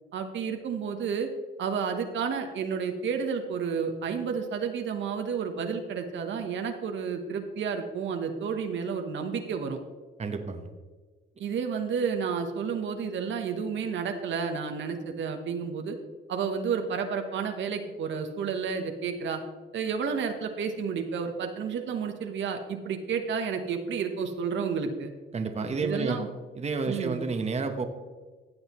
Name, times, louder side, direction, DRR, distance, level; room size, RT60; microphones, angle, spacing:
voice 1, 0.1-1.3 1.6-9.8 11.4-16.0 16.3-19.4 19.7-25.1 25.8-26.3 26.9-27.2, right 6 dB, 70° right, 5 dB, 1.2 m, -31 dB
voice 2, 10.2-10.6 25.3-26.2 26.6-27.9, right 4 dB, 35° right, 6 dB, 1.1 m, -30 dB
15.0 x 8.0 x 3.1 m, 1.4 s
cardioid pair, 90°, 20 cm